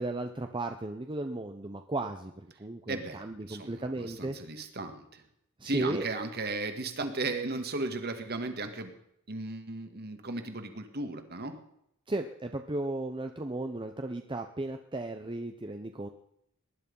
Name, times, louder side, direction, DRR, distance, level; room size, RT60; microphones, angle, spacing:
voice 1, 0.0-2.3 2.6-4.4 5.6-6.1 12.1-16.1, right 2 dB, 25° right, 6 dB, 0.8 m, -35 dB
voice 2, 2.9-5.2 5.6-8.9 9.3-11.6, right 2 dB, 50° right, 7 dB, 2.0 m, -35 dB
19.5 x 11.0 x 5.5 m, 0.76 s
head